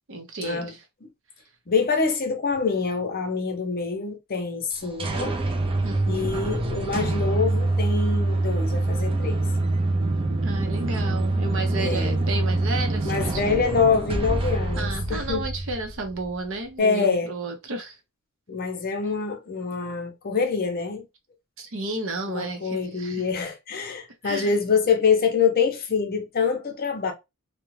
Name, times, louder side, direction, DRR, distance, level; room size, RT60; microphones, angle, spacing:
voice 1, 0.1-0.8 5.8-6.4 10.4-13.6 14.8-18.0 21.6-23.3 24.2-24.5, right 2 dB, 60° right, 0.7 m, -32 dB
voice 2, 1.7-5.4 6.1-9.4 11.7-12.2 13.0-15.4 16.8-17.3 18.5-21.0 22.3-27.1, left 5 dB, 45° left, 0.6 m, -25 dB
sound 1, 4.7-16.3, right 2 dB, 25° right, 0.4 m, -25 dB
2.3 x 2.1 x 3.1 m
head